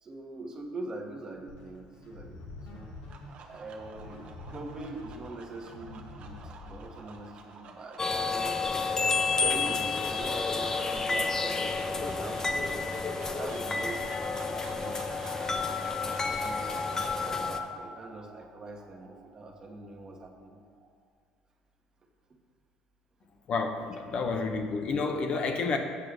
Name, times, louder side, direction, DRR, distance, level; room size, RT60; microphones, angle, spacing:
voice 1, 0.0-2.9 3.5-8.0 8.3-8.6 9.2-16.6 17.2-20.6 23.8-23.9, right 2 dB, 30° right, 2 dB, 1.3 m, -44 dB
sound 1, 1.5-7.3, left 2 dB, 80° left, 1.5 m, -47 dB
sound 2, 2.8-21.1, right 5 dB, 60° right, 1.0 m, -48 dB
sound 3, 8.0-17.6, left 4 dB, 25° left, 0.7 m, -30 dB
voice 2, 23.5-25.8, left 4 dB, 50° left, 4 dB, 0.9 m, -30 dB
8.4 x 4.6 x 6.6 m, 2.2 s
supercardioid pair, 90°, 2 cm